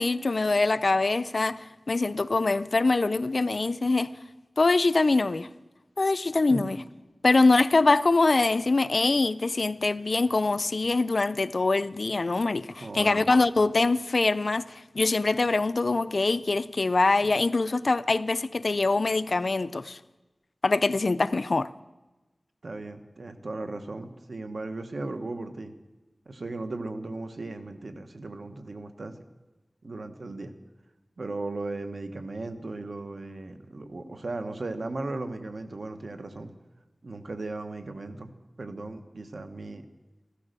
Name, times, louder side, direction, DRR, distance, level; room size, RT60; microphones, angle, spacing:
voice 1, 0.0-4.1 4.6-5.5 6.0-6.8 7.2-14.6 14.9-20.0 20.6-21.7, left 3 dB, 70° left, 0.5 m, -24 dB
voice 2, 12.8-13.3 22.6-25.7 26.3-29.1 29.8-30.5 31.2-36.5 37.0-38.3 38.6-39.8, right 2 dB, 85° right, 1.2 m, -36 dB
14.5 x 13.5 x 6.8 m
wide cardioid pair, 65°, 0 cm